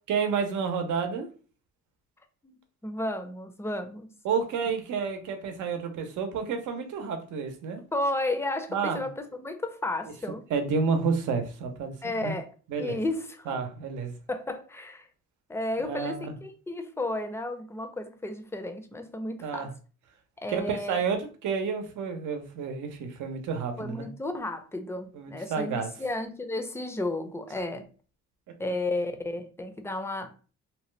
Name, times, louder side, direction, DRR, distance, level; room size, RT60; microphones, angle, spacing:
voice 1, 0.1-1.3 4.2-7.8 8.7-9.0 10.5-12.3 12.7-13.0 13.5-14.1 15.8-16.3 19.4-19.7 20.5-24.1 25.1-25.9, right 5 dB, 75° right, 0.7 m, -30 dB
voice 2, 2.4-4.1 7.9-10.4 12.0-12.5 12.8-13.5 14.3-15.1 15.5-19.7 20.4-21.0 23.8-27.9 28.6-30.3, left 2 dB, 10° left, 0.5 m, -33 dB
2.8 x 2.1 x 3.1 m
cardioid pair, 90°, 30 cm